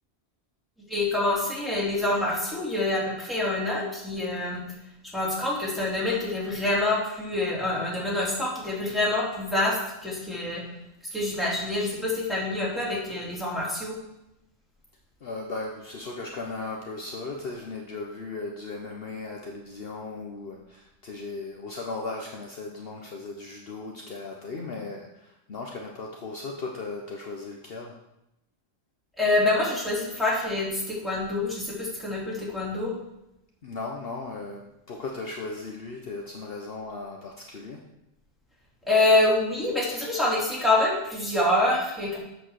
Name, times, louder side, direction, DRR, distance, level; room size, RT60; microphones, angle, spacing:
voice 1, 0.9-4.6 5.1-10.6 11.1-13.9 29.2-32.9 38.9-42.2, left 2 dB, ahead, -6 dB, 3.0 m, -26 dB
voice 2, 15.2-28.0 33.6-37.8, left 3 dB, 55° left, 1 dB, 1.1 m, -37 dB
7.9 x 6.7 x 6.4 m, 0.89 s
omnidirectional pair, 1.2 m